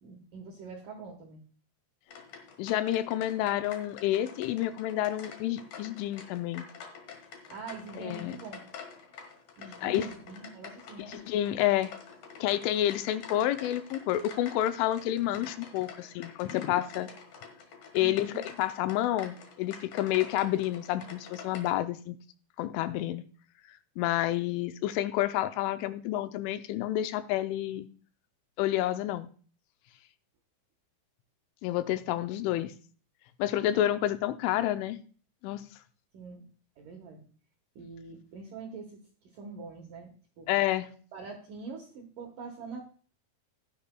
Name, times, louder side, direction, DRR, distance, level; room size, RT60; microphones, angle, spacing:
voice 1, 0.0-1.4 7.5-8.6 9.6-11.2 18.0-18.4 36.1-36.4 36.8-37.2 37.8-39.0 39.3-40.5 41.1-42.8, right 4 dB, 75° right, 2.0 m, -44 dB
sound 1, 2.1-21.7, left 6 dB, 60° left, 2.5 m, -48 dB
voice 2, 2.6-6.7 8.0-8.4 9.8-10.1 11.1-11.9 12.4-17.1 17.9-22.2 22.6-23.2 24.0-27.9 28.6-29.3 31.6-32.7 33.4-35.0 35.4-35.7 40.5-40.9, left 13 dB, 85° left, 3.0 m, -29 dB
15.5 x 10.0 x 2.2 m
omnidirectional pair, 5.6 m